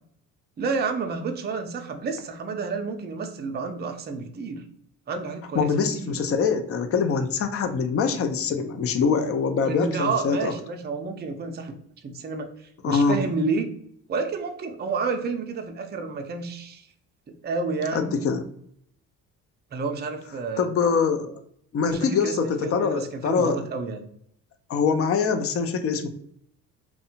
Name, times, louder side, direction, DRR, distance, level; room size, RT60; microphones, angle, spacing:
voice 1, 0.6-4.6 5.1-6.1 9.6-11.7 12.0-12.5 12.9-13.7 14.1-16.8 17.3-18.2 19.7-20.7 21.9-24.1, right 4 dB, 25° right, 5 dB, 0.5 m, -30 dB
voice 2, 5.6-10.5 12.8-13.2 17.9-18.5 20.6-21.3 21.7-23.6 24.7-26.1, left 5 dB, 40° left, 7 dB, 0.5 m, -24 dB
2.7 x 2.2 x 2.7 m, 0.68 s
supercardioid pair, 65°, 38 cm